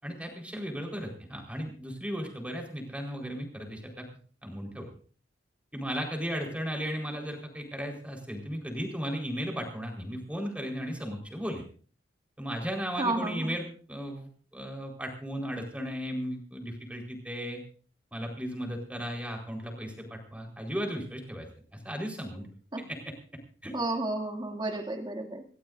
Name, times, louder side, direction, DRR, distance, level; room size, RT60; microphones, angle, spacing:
voice 1, 0.0-4.1 4.4-4.9 5.7-11.6 12.4-17.6 18.1-21.5 21.7-22.4 22.9-23.1 23.6-23.7, equal, 5° right, 1 dB, 4.3 m, -36 dB
voice 2, 13.0-13.6 22.7-22.9 23.7-25.4, right 2 dB, 25° right, 3 dB, 2.4 m, -32 dB
27.5 x 15.0 x 2.6 m, 0.42 s
head